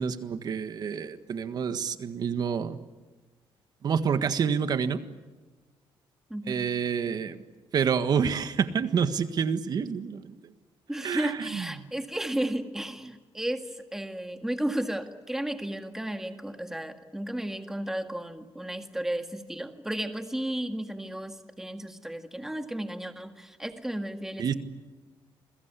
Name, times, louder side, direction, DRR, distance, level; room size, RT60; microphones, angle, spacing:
voice 1, 0.0-2.8 3.8-5.0 6.5-7.4 7.7-10.4 11.0-11.9 24.4-24.5, right 6 dB, 45° right, 10 dB, 1.6 m, -28 dB
voice 2, 6.3-6.7 10.9-24.5, right 1 dB, 5° right, 7 dB, 1.9 m, -33 dB
29.5 x 22.0 x 8.3 m, 1.2 s
cardioid pair, 170°, 10 cm